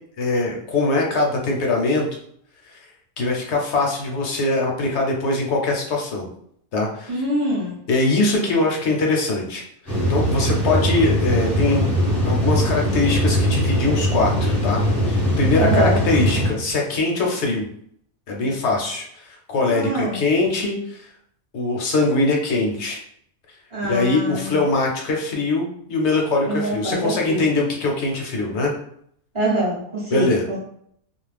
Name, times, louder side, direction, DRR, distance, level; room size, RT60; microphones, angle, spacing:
voice 1, 0.2-2.1 2.6-2.8 3.2-6.3 6.7-7.1 7.9-11.9 12.3-14.8 15.1-17.6 18.3-21.1 21.5-23.0 23.9-28.7 30.1-30.4, left 2 dB, 60° left, 0 dB, 0.8 m, -22 dB
voice 2, 7.1-7.8 15.6-16.0 19.7-20.2 23.7-24.6 26.5-27.4 29.3-30.6, right 1 dB, 30° right, -6 dB, 0.7 m, -24 dB
sound 1, 9.9-16.5, equal, ahead, 0.7 m, -21 dB
2.4 x 2.1 x 3.3 m, 0.68 s
omnidirectional pair, 1.4 m